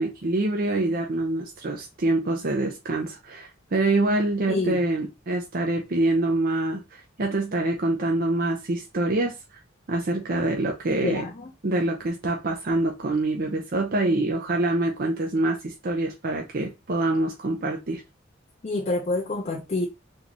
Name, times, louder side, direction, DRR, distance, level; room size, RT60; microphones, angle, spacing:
voice 1, 0.0-9.6 9.9-11.2 11.6-18.0, right 2 dB, 45° right, 0.6 m, -25 dB
voice 2, 4.5-4.8 11.0-11.5 18.6-19.9, left 2 dB, 35° left, 0.5 m, -27 dB
3.7 x 2.5 x 2.9 m
head